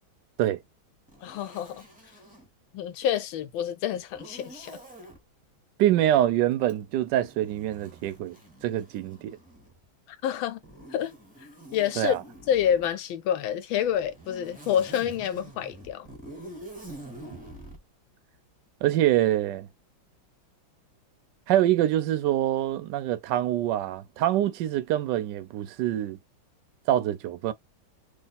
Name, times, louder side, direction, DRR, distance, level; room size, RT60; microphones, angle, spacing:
Zipper (clothing), 1.1-2.5 4.1-5.2 6.6-9.8 10.6-12.9 13.8-17.8, right 1 dB, 10° right, 0.5 m, -47 dB
voice 1, 1.2-1.8 2.7-4.8 10.1-10.6 10.9-11.1 11.7-12.1 12.5-16.1, left 9 dB, 80° left, 1.4 m, -28 dB
voice 2, 5.8-9.4 12.0-12.2 18.8-19.7 21.5-26.2 26.9-27.5, right 12 dB, 75° right, 1.1 m, -25 dB
3.3 x 2.4 x 4.0 m
omnidirectional pair, 2.2 m